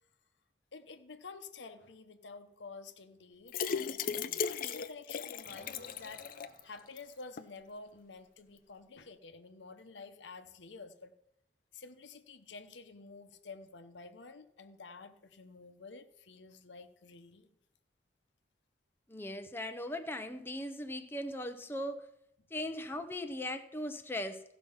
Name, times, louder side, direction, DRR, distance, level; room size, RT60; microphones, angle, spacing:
voice 1, 0.7-6.3 6.6-11.1 11.7-17.5, left 4 dB, 85° left, 8 dB, 0.9 m, -50 dB
sound 1, 3.5-6.6 7.0-7.1 7.4-7.5, left 6 dB, 50° left, 0.5 m, -36 dB
sound 2, 5.4-8.2, right 2 dB, 45° right, 1.3 m, -61 dB
voice 2, 19.1-22.1 22.5-24.4, left 1 dB, 15° left, 6 dB, 0.7 m, -39 dB
15.5 x 6.0 x 5.6 m, 0.80 s
head